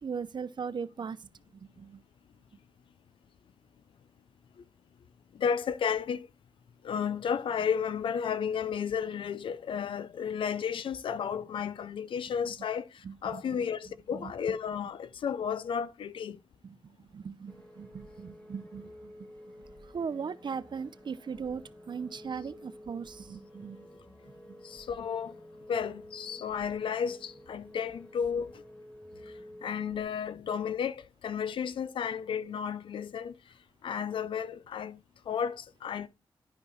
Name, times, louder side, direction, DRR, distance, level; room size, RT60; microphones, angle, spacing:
voice 1, 0.0-2.0 13.0-13.4 14.1-14.3 16.6-19.1 19.8-23.9 24.3-24.4, right 6 dB, 65° right, 0.7 m, -39 dB
voice 2, 5.3-6.3 6.8-16.4 24.6-25.4 25.7-28.6 29.3-29.4 29.6-33.5 33.8-35.0 35.3-36.1, left 7 dB, 90° left, 0.5 m, -33 dB
sound 1, 17.5-30.0, left 1 dB, 15° left, 2.3 m, -51 dB
11.0 x 5.5 x 4.1 m
cardioid pair, 55°, 8 cm